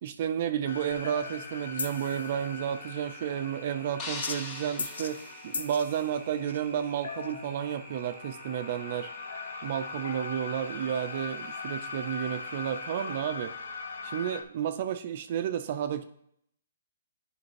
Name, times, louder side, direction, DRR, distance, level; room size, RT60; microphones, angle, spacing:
voice 1, 0.0-9.1 9.6-13.5 14.0-16.0, right 9 dB, 45° right, 8 dB, 0.3 m, -32 dB
sound 1, 0.7-14.4, left 4 dB, 80° left, 0.6 m, -40 dB
sound 2, 0.9-13.2, right 4 dB, 5° right, 1.2 m, -51 dB
sound 3, 4.0-6.3, left 3 dB, 25° left, 0.9 m, -41 dB
9.6 x 5.1 x 3.1 m, 0.73 s
hypercardioid pair, 155°, 0 cm